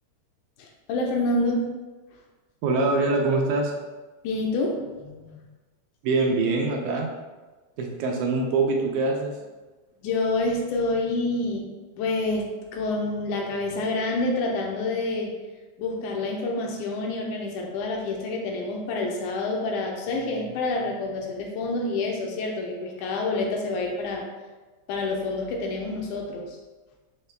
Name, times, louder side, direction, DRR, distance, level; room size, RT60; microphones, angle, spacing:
voice 1, 0.6-1.6 4.2-5.5 10.0-11.7 12.0-15.3 15.8-24.3 24.9-26.6, left 2 dB, 80° left, 0 dB, 1.9 m, -28 dB
voice 2, 2.6-3.7 6.0-7.1 7.8-9.3, right 3 dB, 80° right, 1 dB, 1.8 m, -24 dB
5.4 x 2.2 x 3.2 m, 1.2 s
omnidirectional pair, 3.5 m